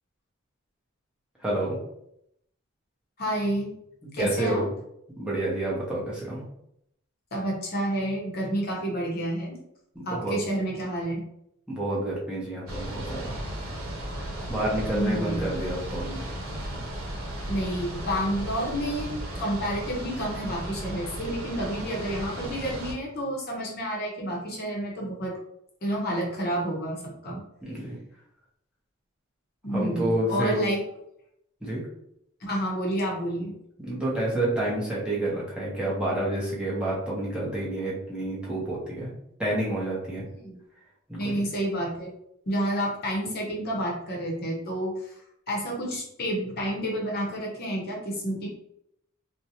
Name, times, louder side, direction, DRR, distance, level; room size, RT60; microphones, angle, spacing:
voice 1, 1.4-1.8 4.2-4.7 5.2-6.4 9.9-10.3 11.7-13.4 14.2-16.3 27.6-28.0 29.7-30.6 31.6-31.8 33.8-39.1 39.4-40.2 41.1-41.4, right 1 dB, 5° right, -7 dB, 0.7 m, -29 dB
voice 2, 3.2-3.7 4.1-4.6 7.3-9.6 10.1-11.2 14.9-15.5 17.5-25.4 25.8-27.4 29.6-30.8 32.4-33.5 40.3-40.5 41.2-42.1 42.5-45.2 45.5-48.5, equal, 50° left, -2 dB, 0.7 m, -29 dB
sound 1, 12.7-22.9, right 1 dB, 85° right, 0.7 m, -35 dB
2.5 x 2.1 x 2.8 m, 0.76 s
head